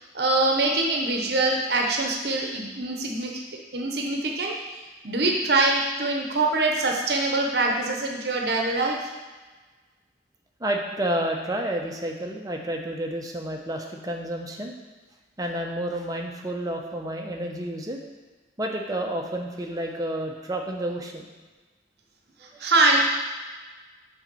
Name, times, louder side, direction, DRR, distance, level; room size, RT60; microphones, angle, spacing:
voice 1, 0.1-3.3 3.7-4.5 5.0-9.1 22.6-23.0, right 2 dB, 60° right, 0 dB, 0.9 m, -23 dB
voice 2, 10.6-14.7 15.4-18.0 18.6-21.3 22.5-22.7, right 1 dB, 20° right, 1 dB, 0.7 m, -30 dB
6.4 x 4.2 x 6.1 m, 1.3 s
head